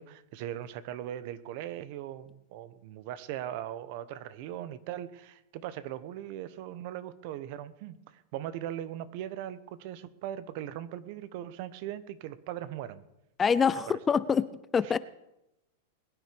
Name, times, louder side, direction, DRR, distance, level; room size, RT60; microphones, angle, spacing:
voice 1, 0.0-13.0 13.9-14.0 14.8-15.0, right 12 dB, 55° right, 14 dB, 1.1 m, -39 dB
voice 2, 13.4-14.4 14.7-15.0, left 6 dB, 20° left, 16 dB, 0.6 m, -25 dB
21.5 x 9.7 x 5.3 m, 0.87 s
supercardioid pair, 135°, 0 cm